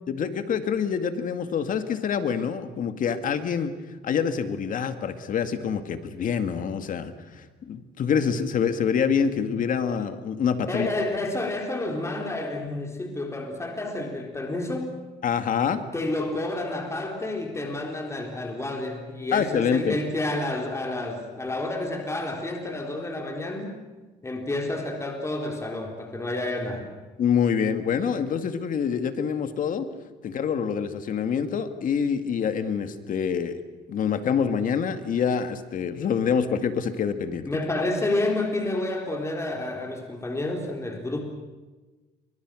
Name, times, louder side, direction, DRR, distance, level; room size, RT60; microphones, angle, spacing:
voice 1, 0.1-3.8 4.0-10.9 15.2-15.8 19.3-20.0 27.2-29.9 30.2-33.6 33.9-37.5, left 7 dB, 50° left, 9 dB, 2.1 m, -26 dB
voice 2, 10.7-14.9 15.9-23.7 24.2-26.9 37.4-41.2, left 2 dB, 15° left, 2 dB, 4.1 m, -29 dB
29.0 x 25.0 x 6.4 m, 1.2 s
cardioid pair, 110°, 17 cm